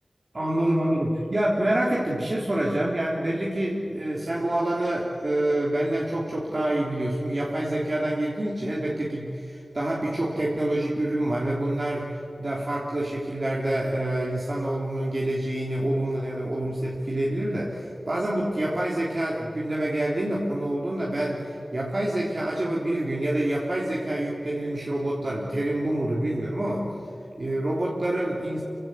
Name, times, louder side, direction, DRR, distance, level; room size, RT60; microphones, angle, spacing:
voice 1, 0.3-12.1 12.4-26.9 27.4-28.6, right 1 dB, 45° right, -5 dB, 3.7 m, -27 dB
29.0 x 16.0 x 8.2 m, 2.6 s
wide cardioid pair, 80°, 0 cm